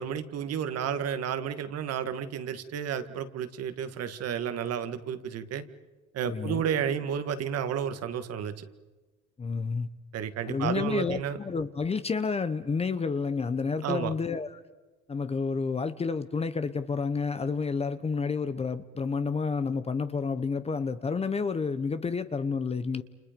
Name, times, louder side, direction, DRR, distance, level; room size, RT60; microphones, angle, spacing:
voice 1, 0.0-5.6 6.1-8.6 10.1-11.4 13.8-14.1, right 8 dB, 50° right, 10 dB, 1.8 m, -32 dB
voice 2, 6.2-6.6 9.4-9.9 10.5-14.5 15.1-23.0, left 5 dB, 20° left, 12 dB, 0.8 m, -30 dB
29.5 x 29.0 x 5.2 m, 1.2 s
cardioid pair, 160°, 31 cm